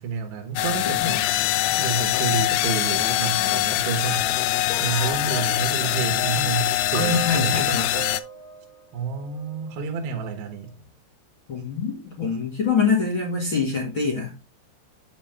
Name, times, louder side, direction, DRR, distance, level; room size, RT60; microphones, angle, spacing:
voice 1, 0.0-4.3 4.8-7.9 8.9-10.7, right 6 dB, 75° right, 3.3 m, -29 dB
sound 1, 0.6-8.2, left 16 dB, 85° left, 2.3 m, -23 dB
sound 2, 4.7-9.8 10.7-10.9, right 3 dB, 65° left, 1.7 m, -37 dB
voice 2, 7.0-7.9 11.5-14.3, left 5 dB, 50° left, 1.5 m, -24 dB
8.1 x 7.4 x 3.4 m
omnidirectional pair, 5.3 m